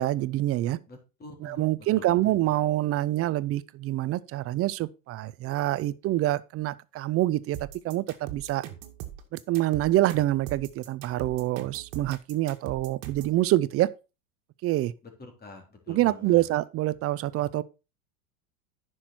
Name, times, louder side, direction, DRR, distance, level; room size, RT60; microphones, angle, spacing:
voice 1, 0.0-0.8 1.4-8.6 9.3-13.9 14.6-14.9 15.9-17.6, right 15 dB, 35° right, 0.5 m, -26 dB
voice 2, 0.9-2.6 15.0-16.5, left 2 dB, 20° left, 3.7 m, -47 dB
sound 1, 7.5-13.4, right 12 dB, 55° right, 1.9 m, -40 dB
10.0 x 6.2 x 4.3 m
hypercardioid pair, 110°, 42 cm